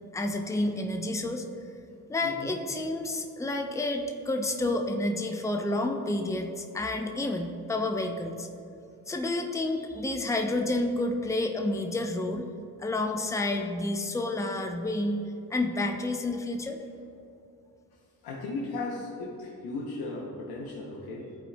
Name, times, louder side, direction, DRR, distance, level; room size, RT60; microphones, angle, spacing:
voice 1, 0.1-1.5 2.1-8.5 9.1-12.5 12.8-16.8, left 2 dB, 10° left, 4 dB, 0.6 m, -30 dB
voice 2, 2.2-2.7 17.9-21.4, left 2 dB, 80° left, -3 dB, 0.8 m, -37 dB
10.5 x 4.2 x 2.2 m, 2.6 s
supercardioid pair, 50°, 37 cm